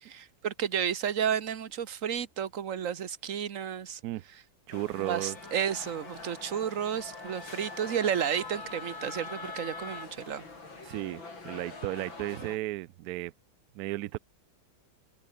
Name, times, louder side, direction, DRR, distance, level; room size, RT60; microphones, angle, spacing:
voice 1, 0.0-4.0 5.0-10.4, right 8 dB, 45° right, 1.4 m, -32 dB
sound 1, 4.7-12.6, left 3 dB, 85° left, 5.9 m, -45 dB
voice 2, 4.7-5.4 10.8-13.3 13.7-14.2, right 16 dB, 75° right, 0.9 m, -34 dB
Wind instrument woodwind instrument, 4.9-10.1, left 3 dB, 70° left, 5.2 m, -45 dB
omnidirectional pair, 2.1 m